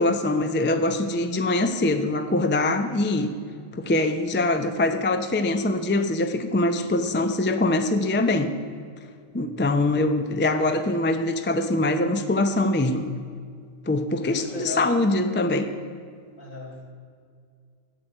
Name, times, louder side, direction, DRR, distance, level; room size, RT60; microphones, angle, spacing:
voice 1, 0.0-3.3 3.7-8.5 9.3-13.1 13.9-15.7, left 2 dB, 15° left, 7 dB, 0.4 m, -23 dB
voice 2, 9.3-9.6 14.2-14.9 16.4-16.9, left 2 dB, 75° left, -2 dB, 3.1 m, -38 dB
12.5 x 8.9 x 7.8 m, 2.1 s
omnidirectional pair, 1.4 m